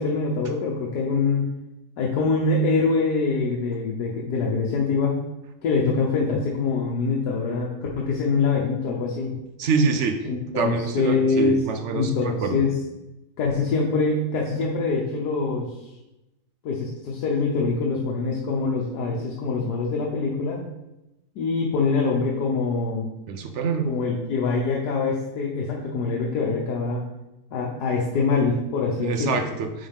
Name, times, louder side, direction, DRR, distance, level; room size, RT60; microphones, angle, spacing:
voice 1, 0.0-1.5 2.0-5.2 5.6-7.7 8.0-9.3 10.2-11.6 11.9-12.7 13.4-15.7 16.6-20.6 21.4-23.1 23.8-27.0 27.5-29.4, left 4 dB, 85° left, -2 dB, 1.4 m, -24 dB
voice 2, 9.6-10.3 10.6-12.6 23.3-23.9 29.0-29.9, right 5 dB, 60° right, 7 dB, 0.8 m, -25 dB
9.7 x 3.9 x 3.5 m, 0.95 s
omnidirectional pair, 1.7 m